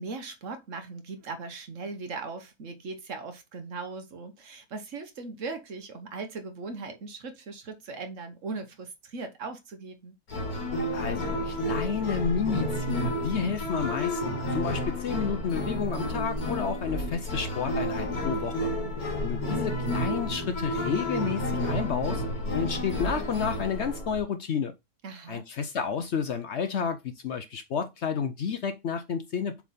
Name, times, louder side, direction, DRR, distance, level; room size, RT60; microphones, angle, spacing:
voice 1, 0.0-10.1 25.0-25.4, right 4 dB, 60° right, 1.3 m, -39 dB
sound 1, 10.3-24.2, left 1 dB, 80° left, 2.3 m, -31 dB
voice 2, 10.9-18.7 19.2-22.2 22.5-24.7 25.3-29.6, left 6 dB, 60° left, 0.8 m, -31 dB
7.2 x 3.5 x 4.2 m
omnidirectional pair, 1.5 m